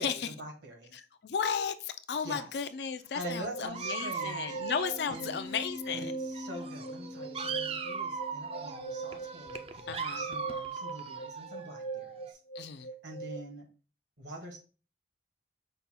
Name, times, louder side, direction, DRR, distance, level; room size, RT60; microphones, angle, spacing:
voice 1, 0.0-1.0 2.2-2.5 3.1-4.6 5.1-5.4 5.9-12.4 13.0-13.7 14.2-14.6, right 1 dB, 75° right, 1.4 m, -44 dB
voice 2, 0.9-6.1 9.9-10.2 12.5-12.9, left 6 dB, 65° left, 0.4 m, -34 dB
sound 1, 3.2-13.4, right 3 dB, 85° left, 1.1 m, -41 dB
Dog, 3.7-6.0 6.3-12.3, right 5 dB, 30° right, 0.4 m, -39 dB
5.3 x 2.3 x 4.2 m
head